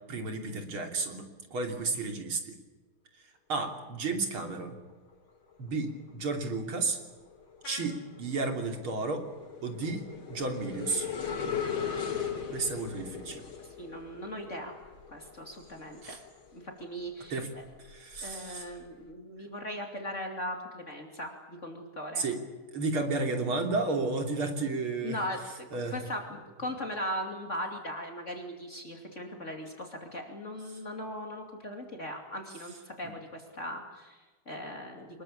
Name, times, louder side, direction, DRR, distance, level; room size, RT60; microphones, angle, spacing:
voice 1, 0.1-2.6 3.5-4.8 5.6-7.0 7.6-9.3 9.6-10.0 10.3-11.1 12.5-13.4 16.0-16.2 17.3-17.5 17.9-18.7 22.2-22.4 22.7-25.2 25.7-26.0 30.7-30.8, right 3 dB, 85° right, 4 dB, 4.0 m, -32 dB
sound 1, 4.7-5.1 5.5-16.8 17.2-18.9, left 7 dB, 85° left, 3.8 m, -39 dB
voice 2, 13.8-14.7 15.1-16.2 16.5-17.6 18.2-22.2 25.0-25.7 25.9-35.2, equal, 35° left, 2 dB, 3.0 m, -39 dB
25.0 x 21.5 x 8.6 m, 1.3 s
omnidirectional pair, 2.3 m